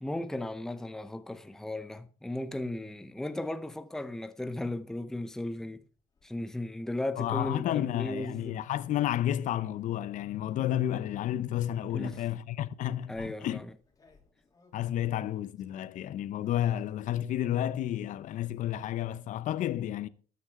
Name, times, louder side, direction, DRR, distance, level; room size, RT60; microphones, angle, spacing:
voice 1, 0.0-5.8 6.2-8.6 11.9-12.2 13.1-13.7, left 1 dB, 5° left, 0.7 m, -36 dB
sound 1, 5.8-6.3 8.0-8.3 9.1-9.9 10.6-10.9 12.0-12.5 13.1-16.9 17.3-17.8 18.1-18.7, left 4 dB, 25° left, 3.0 m, -63 dB
voice 2, 7.2-13.6 14.7-20.1, left 12 dB, 60° left, 0.7 m, -31 dB
13.0 x 9.6 x 3.7 m
cardioid pair, 130°, 15 cm